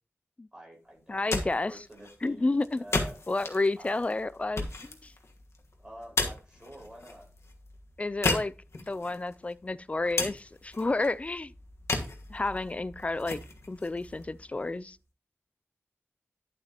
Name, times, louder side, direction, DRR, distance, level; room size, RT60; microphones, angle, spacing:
voice 1, 0.5-1.4 1.7-3.2 3.8-4.1 5.8-7.2, right 1 dB, 15° right, 4.8 m, -48 dB
sound 1, 1.0-15.0, left 3 dB, 70° left, 1.4 m, -36 dB
voice 2, 1.1-1.8 2.2-2.8 3.3-5.1 8.0-11.5 12.3-13.4 13.7-15.0, left 2 dB, 25° left, 0.4 m, -31 dB
11.5 x 7.4 x 2.9 m
wide cardioid pair, 100°, 5 cm